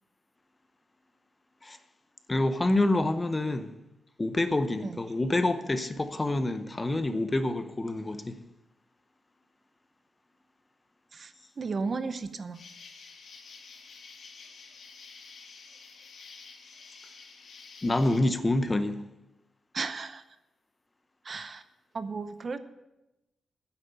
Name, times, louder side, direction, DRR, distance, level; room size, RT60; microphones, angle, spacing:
voice 1, 2.3-3.7 4.2-8.4 17.8-19.0, left 2 dB, 20° left, 0.7 m, -27 dB
voice 2, 11.1-12.6 19.7-20.2 21.2-21.6 21.9-22.6, right 4 dB, 40° right, 0.7 m, -34 dB
Insect, 12.5-18.2, left 5 dB, 65° left, 1.6 m, -49 dB
10.0 x 8.3 x 6.7 m
cardioid pair, 115°, 0 cm